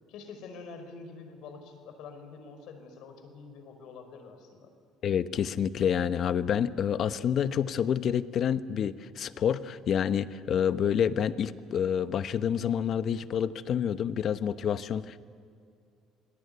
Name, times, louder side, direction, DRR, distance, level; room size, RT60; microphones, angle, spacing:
voice 1, 0.1-4.7, left 4 dB, 75° left, 7 dB, 5.3 m, -46 dB
voice 2, 5.0-15.2, left 8 dB, 50° left, 12 dB, 1.0 m, -28 dB
28.0 x 21.5 x 9.6 m, 2.4 s
cardioid pair, 110°, 0 cm